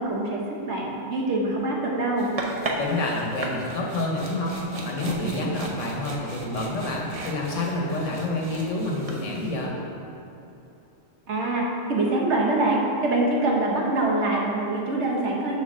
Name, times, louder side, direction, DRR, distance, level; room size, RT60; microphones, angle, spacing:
voice 1, 0.0-2.3 11.3-15.6, right 2 dB, 60° right, -2 dB, 1.3 m, -24 dB
sound 1, 2.2-9.7, right 2 dB, 35° right, 0.6 m, -36 dB
voice 2, 2.8-9.8, left 2 dB, 70° left, -1 dB, 1.4 m, -28 dB
6.4 x 4.5 x 6.1 m, 2.9 s
omnidirectional pair, 1.3 m